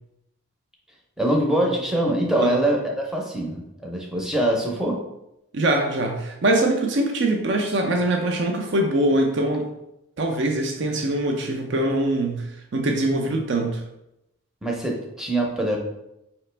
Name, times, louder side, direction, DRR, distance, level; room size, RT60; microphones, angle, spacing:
voice 1, 1.2-5.0 14.6-15.8, right 1 dB, 5° right, -1 dB, 0.6 m, -23 dB
voice 2, 5.5-9.6 10.2-13.8, right 1 dB, 55° right, 3 dB, 0.5 m, -23 dB
4.9 x 2.9 x 3.2 m, 0.87 s
head